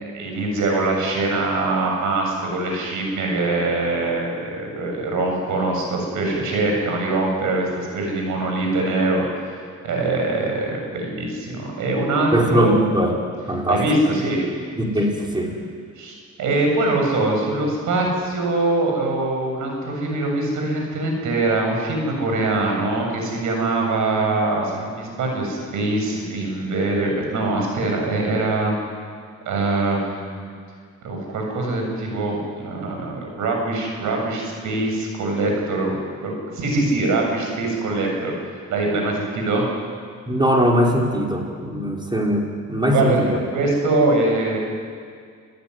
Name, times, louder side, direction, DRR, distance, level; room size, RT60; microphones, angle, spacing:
voice 1, 0.1-9.2 9.8-12.8 13.7-14.4 16.0-28.7 29.5-30.5 31.0-39.7 42.9-43.2 43.5-44.6, right 2 dB, 80° right, 1 dB, 7.6 m, -23 dB
voice 2, 12.3-13.1 13.5-13.8 14.8-15.6 40.3-43.4, equal, 15° right, 0 dB, 5.2 m, -20 dB
27.5 x 15.5 x 9.9 m, 2.1 s
cardioid pair, 90°, 30 cm